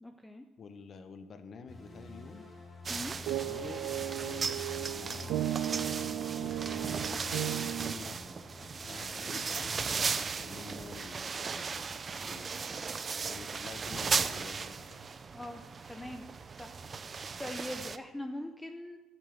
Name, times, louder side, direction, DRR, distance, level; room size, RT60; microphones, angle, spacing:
voice 1, 0.0-0.4 2.9-3.2 15.3-15.6 15.9-16.2 16.6-16.8 17.4-19.0, left 1 dB, 10° left, 6 dB, 0.7 m, -41 dB
voice 2, 0.6-2.4 3.4-8.2 8.9-11.9 12.2-12.6 13.3-15.1, left 5 dB, 40° left, 9 dB, 1.1 m, -49 dB
sound 1, 1.7-10.1, left 2 dB, 25° left, 2.8 m, -49 dB
sound 2, 2.8-18.0, right 5 dB, 30° right, 0.6 m, -37 dB
sound 3, 3.3-7.9, right 13 dB, 85° right, 0.4 m, -35 dB
12.0 x 7.7 x 7.8 m, 1.2 s
cardioid pair, 115°, 0 cm